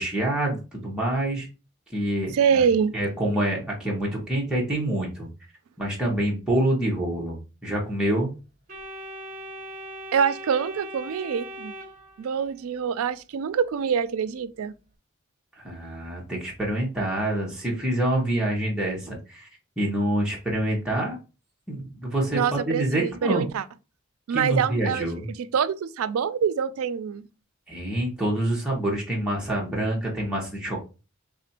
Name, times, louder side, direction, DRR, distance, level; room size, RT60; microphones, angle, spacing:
voice 1, 0.0-1.5 1.9-2.6 2.9-5.3 5.8-8.3 15.5-19.5 19.8-21.2 21.7-23.4 24.3-25.3 27.7-30.8, right 1 dB, 5° right, 0.9 m, -26 dB
voice 2, 2.3-3.0 10.1-11.7 12.2-14.8 22.3-23.6 24.3-27.3, right 7 dB, 90° right, 0.4 m, -25 dB
Organ, 8.7-12.6, right 1 dB, 40° right, 0.8 m, -39 dB
3.4 x 2.6 x 4.1 m
head